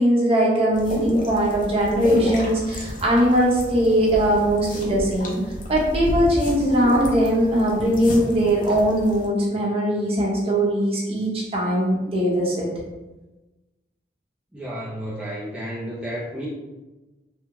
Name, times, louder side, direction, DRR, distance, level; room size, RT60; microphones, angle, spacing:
voice 1, 0.0-5.4 5.7-12.7, equal, 35° right, -4 dB, 0.8 m, -20 dB
sound 1, 0.7-9.3, equal, 50° left, 0.5 m, -31 dB
voice 2, 14.5-16.5, equal, 5° right, -8 dB, 0.4 m, -32 dB
3.4 x 2.1 x 2.9 m, 1.1 s
head